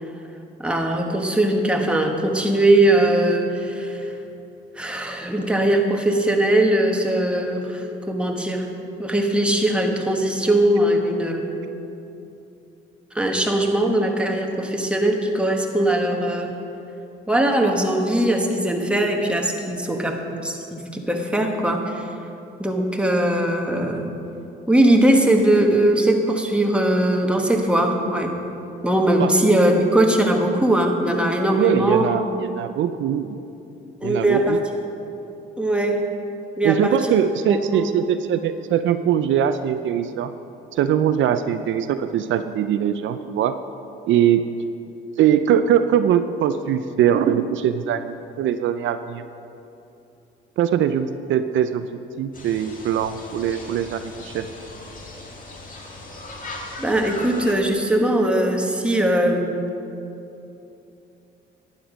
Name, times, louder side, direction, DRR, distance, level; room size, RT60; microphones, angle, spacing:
voice 1, 0.6-4.1 4.8-8.7 9.0-11.5 13.1-16.5 17.3-22.1 22.6-24.1 24.7-28.3 28.8-32.1 34.0-34.6 35.6-36.1 36.6-36.9 37.5-38.2 56.8-59.7, right 1 dB, 5° right, 1 dB, 1.4 m, -20 dB
voice 2, 31.5-33.4 34.0-34.6 36.6-40.3 40.7-43.6 44.1-44.5 45.2-49.2 50.6-54.5, right 9 dB, 75° right, 10 dB, 0.5 m, -21 dB
sound 1, 52.3-57.5, left 2 dB, 40° left, 2.1 m, -38 dB
11.5 x 9.7 x 5.0 m, 2.8 s
cardioid pair, 90°, 20 cm